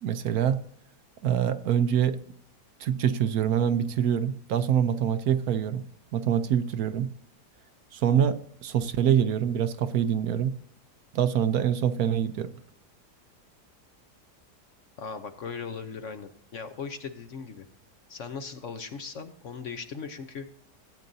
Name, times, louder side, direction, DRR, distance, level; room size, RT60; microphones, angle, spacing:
voice 1, 0.0-0.6 1.2-2.2 2.8-5.8 6.1-7.1 7.9-10.5 11.1-12.5, right 9 dB, 70° right, 11 dB, 1.0 m, -25 dB
voice 2, 15.0-17.7 18.1-20.5, left 5 dB, 55° left, 8 dB, 1.0 m, -38 dB
16.5 x 8.9 x 2.7 m, 0.65 s
omnidirectional pair, 1.8 m